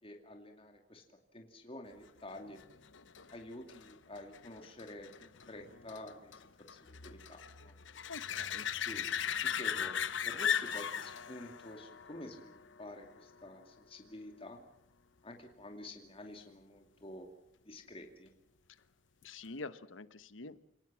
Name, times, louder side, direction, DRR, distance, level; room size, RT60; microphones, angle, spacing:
voice 1, 0.0-1.0 1.3-2.6 3.3-6.4 6.7-7.7 8.9-9.1 9.4-14.6 15.2-17.3 17.7-18.3, left 1 dB, 30° left, 4 dB, 2.5 m, -49 dB
sound 1, 2.3-13.6 19.2-19.3, left 8 dB, 70° left, 1.0 m, -39 dB
voice 2, 8.1-8.7 18.7-18.8 19.2-20.7, left 3 dB, 90° left, 13 dB, 1.2 m, -46 dB
29.0 x 18.5 x 7.5 m, 0.75 s
head